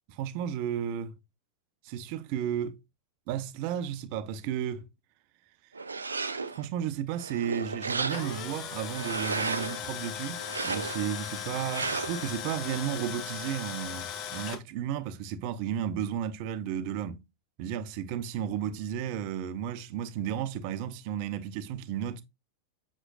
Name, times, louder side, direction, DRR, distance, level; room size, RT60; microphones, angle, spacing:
voice 1, 0.1-1.2 1.8-2.8 3.3-4.9 6.5-10.4 10.6-17.2 17.6-22.2, right 9 dB, 45° right, 1.0 m, -33 dB
sound 1, 5.7-6.7 7.2-8.5 8.9-9.8 10.4-11.2 11.7-12.3, right 4 dB, 75° right, 0.9 m, -34 dB
Tools, 7.9-14.6, left 9 dB, 35° left, 1.4 m, -38 dB
8.1 x 7.3 x 2.4 m
figure-of-eight pair, 90°, 0 cm